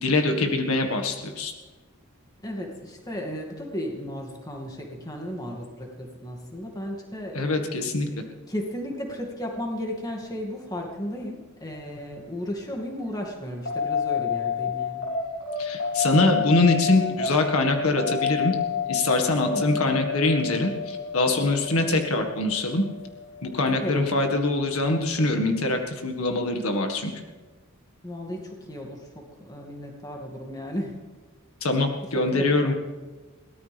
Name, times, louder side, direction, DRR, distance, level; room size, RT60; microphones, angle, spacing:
voice 1, 0.0-1.5 7.3-8.1 15.6-18.5 18.9-22.8 23.4-27.1 31.6-32.7, left 2 dB, 85° left, 4 dB, 1.9 m, -23 dB
voice 2, 2.4-7.9 8.5-15.1 19.5-19.8 23.8-24.1 28.0-29.0 29.4-30.9 32.3-32.7, equal, 15° left, 0 dB, 2.4 m, -34 dB
sound 1, 13.7-24.4, left 6 dB, 60° left, 5.7 m, -29 dB
23.0 x 17.5 x 3.5 m, 1.3 s
head